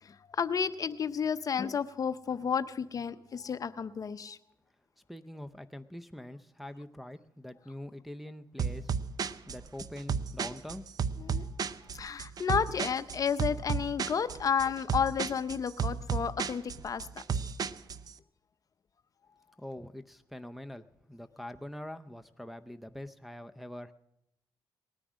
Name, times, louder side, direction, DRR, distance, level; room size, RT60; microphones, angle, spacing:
voice 1, 0.0-4.4 11.2-11.5 11.9-17.2, left 7 dB, 45° left, 13 dB, 0.6 m, -32 dB
voice 2, 5.1-8.9 9.5-10.9 19.6-23.9, left 1 dB, ahead, 7 dB, 0.6 m, -44 dB
sound 1, 8.6-18.1, right 6 dB, 50° right, 0.5 m, -33 dB
19.0 x 9.8 x 6.2 m, 0.82 s
cardioid pair, 90°, 8 cm